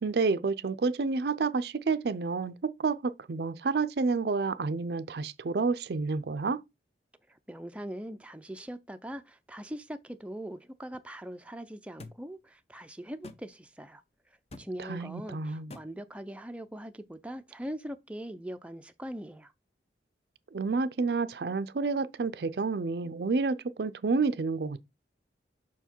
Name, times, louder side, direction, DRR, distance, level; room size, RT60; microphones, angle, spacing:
voice 1, 0.0-2.5 2.8-6.6 14.8-15.7 20.5-24.9, right 4 dB, 65° right, 0.5 m, -29 dB
voice 2, 7.3-14.0 14.6-19.5, equal, 5° right, 0.4 m, -41 dB
sound 1, 12.0-12.2 13.2-13.4 14.5-14.7 15.7-15.9, left 2 dB, 35° left, 0.7 m, -45 dB
6.0 x 4.6 x 4.4 m
head